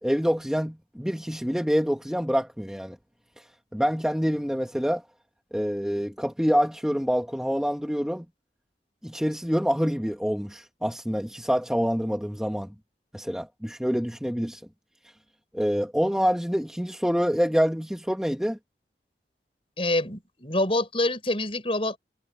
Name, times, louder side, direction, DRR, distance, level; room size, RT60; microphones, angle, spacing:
voice 1, 0.0-3.0 3.7-5.0 5.5-8.2 9.0-12.7 13.1-14.6 15.5-18.6, equal, 5° right, 1.7 m, -26 dB
voice 2, 19.8-22.0, left 1 dB, 30° left, 5.9 m, -26 dB
head